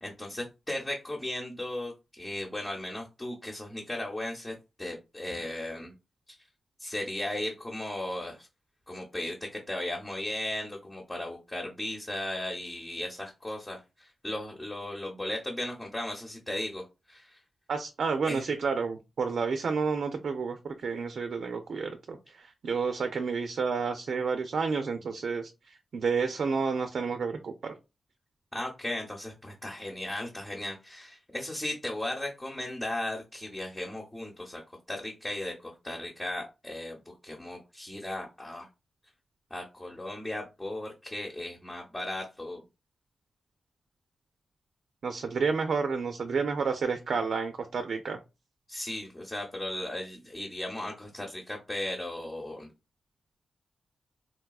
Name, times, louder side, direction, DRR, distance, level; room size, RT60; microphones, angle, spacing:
voice 1, 0.0-5.9 6.3-6.4 6.8-8.5 8.9-16.8 17.1-17.4 18.2-18.4 28.5-34.6 34.9-38.7 39.5-42.6 48.7-52.7, left 1 dB, 20° left, 0.9 m, -36 dB
voice 2, 17.7-27.7 45.0-48.2, right 5 dB, 70° right, 0.4 m, -30 dB
4.0 x 2.2 x 2.3 m
cardioid pair, 60°, 0 cm